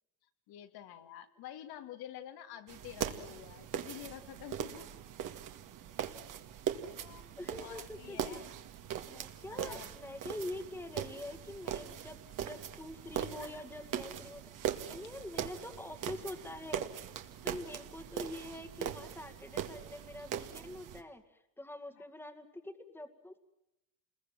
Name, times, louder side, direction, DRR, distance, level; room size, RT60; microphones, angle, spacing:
voice 1, 0.5-4.9 7.0-7.3 7.6-8.5 9.5-10.0 13.4-13.6 22.0-22.1, left 11 dB, 60° left, 8 dB, 2.4 m, -48 dB
sound 1, 2.7-21.0, right 9 dB, 45° right, 2.1 m, -41 dB
voice 2, 7.4-8.4 9.1-16.8 17.4-23.4, left 1 dB, 5° left, 7 dB, 2.1 m, -45 dB
28.0 x 21.5 x 7.6 m, 0.86 s
supercardioid pair, 115°, 43 cm